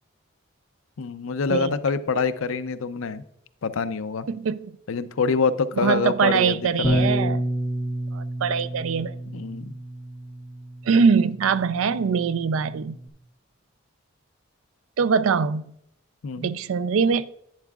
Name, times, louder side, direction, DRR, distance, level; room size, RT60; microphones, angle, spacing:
voice 1, 1.0-3.2 3.6-4.3 4.9-7.1 9.3-9.7 16.2-16.5, left 5 dB, 80° left, 0.5 m, -26 dB
voice 2, 4.3-4.7 5.8-7.4 8.1-9.2 10.9-13.0 15.0-15.6 16.4-17.3, right 5 dB, 75° right, 0.4 m, -22 dB
Bass guitar, 6.8-13.1, right 1 dB, 10° left, 0.4 m, -30 dB
10.5 x 9.1 x 2.3 m
head